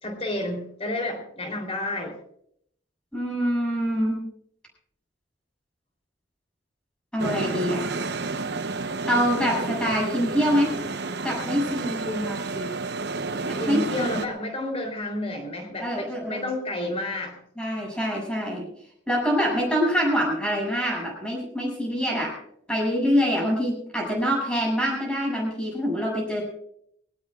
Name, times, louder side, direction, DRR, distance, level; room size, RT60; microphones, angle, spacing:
voice 1, 0.0-2.1 12.0-12.4 13.6-17.4, left 1 dB, 30° left, 4 dB, 3.5 m, -30 dB
voice 2, 3.1-4.2 7.1-7.9 9.1-10.7 11.2-12.7 13.4-14.1 15.8-16.5 17.6-18.7 19.1-22.4 22.7-26.4, equal, 5° left, -3 dB, 7.1 m, -25 dB
sound 1, 7.2-14.3, right 3 dB, 60° right, 0.9 m, -30 dB
20.5 x 18.5 x 2.5 m, 0.69 s
head